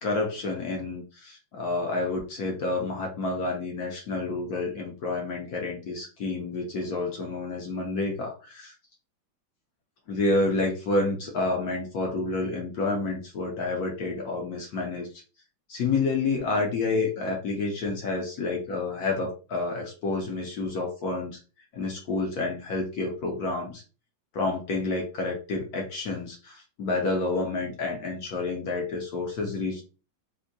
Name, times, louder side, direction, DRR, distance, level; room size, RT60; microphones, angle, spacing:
voice 1, 0.0-8.7 10.1-15.1 15.7-21.4 21.7-23.8 24.3-29.8, left 3 dB, 65° left, 1 dB, 0.9 m, -29 dB
3.6 x 2.5 x 2.6 m, 0.34 s
omnidirectional pair, 2.3 m